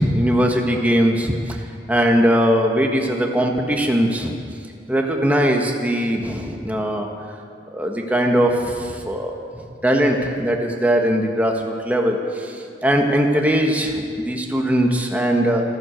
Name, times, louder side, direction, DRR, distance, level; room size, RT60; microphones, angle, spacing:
voice 1, 0.0-1.3 1.9-4.3 4.9-7.1 7.7-9.4 9.8-12.2 12.8-15.6, equal, 10° right, 1 dB, 1.5 m, -20 dB
14.5 x 12.0 x 7.8 m, 2.2 s
head